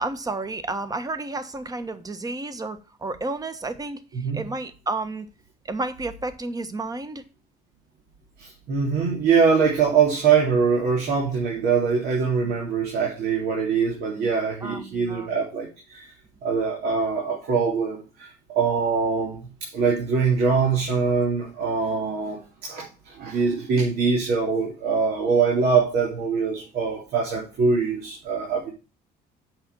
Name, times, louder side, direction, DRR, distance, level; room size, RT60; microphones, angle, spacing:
voice 1, 0.0-5.3 5.6-7.2 12.4-12.6 14.2-14.3 14.6-15.3, right 2 dB, 20° right, 1.3 m, -31 dB
voice 2, 8.4-16.1 16.4-28.7, right 5 dB, 70° right, 3.1 m, -23 dB
8.0 x 6.2 x 5.4 m
cardioid pair, 110°, 17 cm